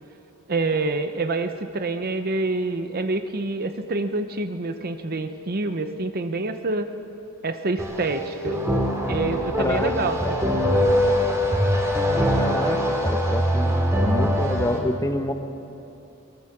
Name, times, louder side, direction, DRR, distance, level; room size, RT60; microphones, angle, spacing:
voice 1, 0.5-7.0 7.4-8.7 9.1-10.2, right 3 dB, 45° right, 8 dB, 0.8 m, -27 dB
sound 1, 7.8-14.8, equal, 15° right, 2.5 m, -22 dB
voice 2, 9.6-9.9 10.2-10.3 12.4-12.8 13.0-13.8 14.0-15.3, left 1 dB, 15° left, 7 dB, 1.2 m, -27 dB
22.0 x 20.0 x 6.8 m, 2.8 s
head